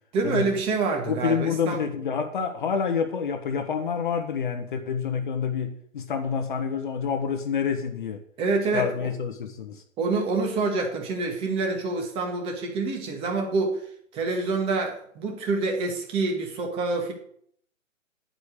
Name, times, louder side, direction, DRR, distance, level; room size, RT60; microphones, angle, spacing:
voice 1, 0.1-1.8 8.4-9.1 10.0-13.9 14.1-17.1, right 3 dB, 15° right, 3 dB, 1.2 m, -27 dB
voice 2, 1.1-8.2 8.7-9.8, left 6 dB, 40° left, 5 dB, 0.9 m, -28 dB
9.4 x 5.1 x 6.5 m, 0.64 s
figure-of-eight pair, 130°, 40 cm